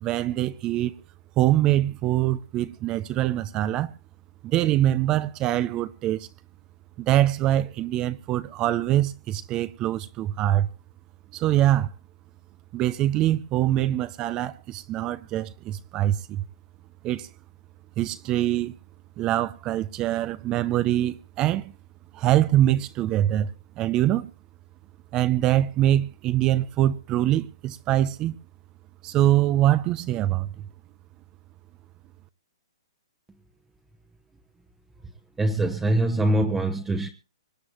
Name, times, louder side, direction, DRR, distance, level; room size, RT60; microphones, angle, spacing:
voice 1, 0.0-0.9 1.4-3.9 4.4-6.3 7.0-10.7 11.3-11.9 12.7-16.4 17.0-17.3 18.0-18.7 19.2-21.7 22.1-23.5 23.8-24.3 25.1-28.4 29.0-30.5, right 13 dB, 25° right, 0.6 m, -24 dB
voice 2, 35.4-37.1, right 1 dB, 10° right, 1.0 m, -23 dB
25.0 x 9.5 x 3.1 m
hypercardioid pair, 140°, 3 cm